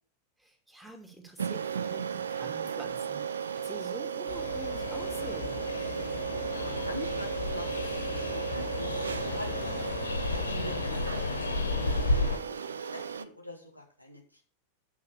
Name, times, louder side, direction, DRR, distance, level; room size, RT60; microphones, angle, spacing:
voice 1, 0.4-5.6 10.5-10.8, right 2 dB, 5° right, 3 dB, 2.4 m, -46 dB
sound 1, 1.4-13.3, right 7 dB, 70° right, 0.5 m, -35 dB
Train, 4.3-12.4, left 3 dB, 75° left, 1.7 m, -33 dB
voice 2, 6.5-9.0 9.3-9.8 10.3-14.4, left 1 dB, 90° right, 3 dB, 2.0 m, -44 dB
9.5 x 5.9 x 7.0 m, 0.44 s
figure-of-eight pair, 90°, 0 cm